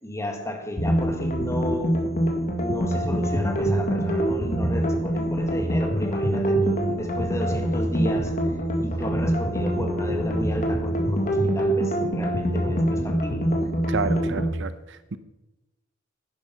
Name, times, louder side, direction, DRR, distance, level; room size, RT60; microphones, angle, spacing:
voice 1, 0.0-2.1 2.6-8.4 8.8-13.5, left 1 dB, 15° left, 1.7 m, -33 dB
sound 1, 0.8-14.5, right 1 dB, 40° left, 1.8 m, -24 dB
voice 2, 13.9-15.2, right 4 dB, 60° right, 0.7 m, -30 dB
11.5 x 10.0 x 5.6 m
head